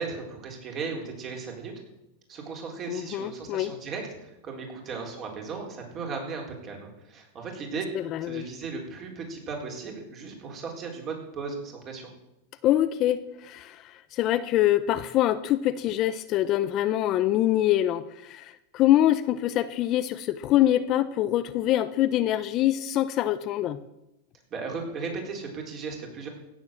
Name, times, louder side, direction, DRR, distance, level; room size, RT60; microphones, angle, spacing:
voice 1, 0.0-1.7 2.3-7.9 8.2-12.1 24.5-26.3, right 4 dB, 30° right, 1 dB, 4.0 m, -36 dB
voice 2, 2.9-3.7 7.9-8.4 12.6-23.8, left 13 dB, 40° left, 13 dB, 0.6 m, -25 dB
16.5 x 7.3 x 7.4 m, 0.90 s
supercardioid pair, 140°, 0 cm